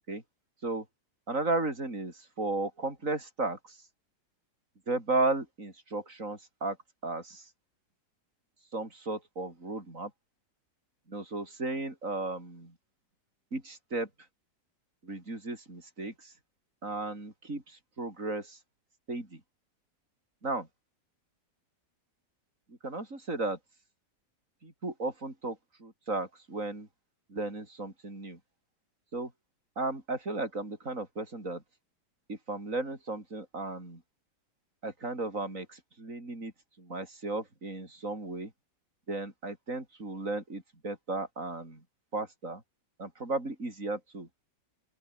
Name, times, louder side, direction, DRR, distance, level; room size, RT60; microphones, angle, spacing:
voice 1, 1.3-3.8 4.9-6.8 7.0-7.5 8.7-10.1 11.1-12.7 13.5-14.1 15.0-16.3 16.8-18.6 19.1-19.4 20.4-20.7 22.8-23.6 24.6-26.9 27.3-28.4 29.1-29.3 29.8-31.6 32.3-34.0 34.8-35.6 36.0-36.5 36.8-38.5 39.1-41.8 42.1-42.6 43.0-44.3, right 2 dB, 45° right, 6.7 m, -34 dB
open air
omnidirectional pair, 1.9 m